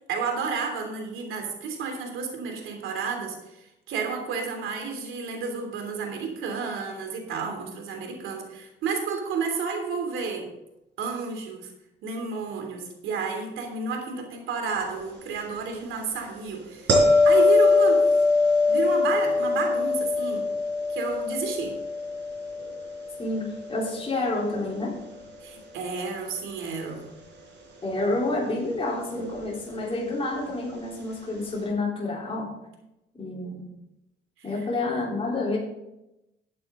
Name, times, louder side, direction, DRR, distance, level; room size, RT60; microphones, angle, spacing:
voice 1, 0.1-10.5 11.0-11.7 12.0-16.9 17.2-18.2 18.7-20.5 20.9-21.7 25.4-27.2 34.4-34.7, right 5 dB, 85° right, 3 dB, 3.0 m, -31 dB
sound 1, 16.9-23.9 29.1-29.3, left 3 dB, 65° right, 4.4 m, -22 dB
voice 2, 23.2-25.0 27.8-32.5 33.1-33.6 34.4-35.6, left 2 dB, 30° left, -4 dB, 3.6 m, -29 dB
13.5 x 8.7 x 3.8 m, 0.90 s
cardioid pair, 90°, 20 cm